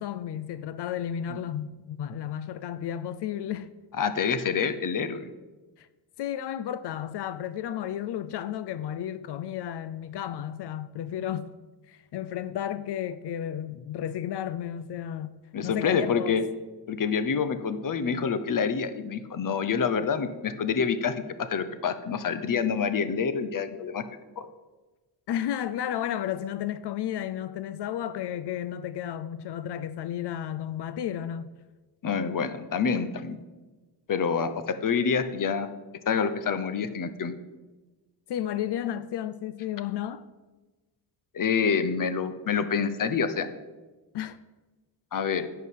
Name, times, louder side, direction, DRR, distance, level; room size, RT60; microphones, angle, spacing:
voice 1, 0.0-3.7 5.8-5.9 6.2-11.5 11.9-15.3 15.6-16.4 25.3-31.5 38.3-40.3 44.1-44.4, left 10 dB, 85° left, 0.5 m, -33 dB
voice 2, 4.0-5.3 15.5-16.4 16.9-24.0 24.4-24.5 32.0-33.4 34.1-35.7 36.1-37.3 41.3-43.5 45.1-45.5, left 6 dB, 55° left, 0.9 m, -27 dB
11.0 x 4.8 x 8.3 m
wide cardioid pair, 130°, 39 cm